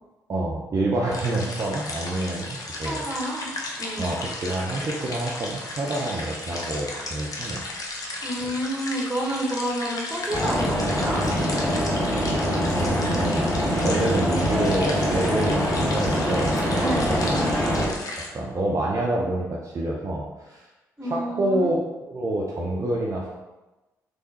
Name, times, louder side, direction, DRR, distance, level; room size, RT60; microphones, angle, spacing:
voice 1, 0.3-3.1 4.0-7.6 8.4-8.5 12.4-13.5 13.8-16.6 17.0-17.5 18.3-20.7 21.0-21.8 22.1-23.3, right 1 dB, 40° right, -3 dB, 0.6 m, -27 dB
sound 1, 1.1-18.3, left 2 dB, 45° left, 0.7 m, -35 dB
voice 2, 2.8-3.5 3.8-4.1 8.2-11.2 16.8-17.1 21.0-21.7, right 1 dB, 10° right, -2 dB, 1.1 m, -29 dB
sound 2, 10.3-17.9, equal, 65° left, 1.3 m, -24 dB
3.6 x 3.1 x 2.8 m, 1.1 s
hypercardioid pair, 40°, 8 cm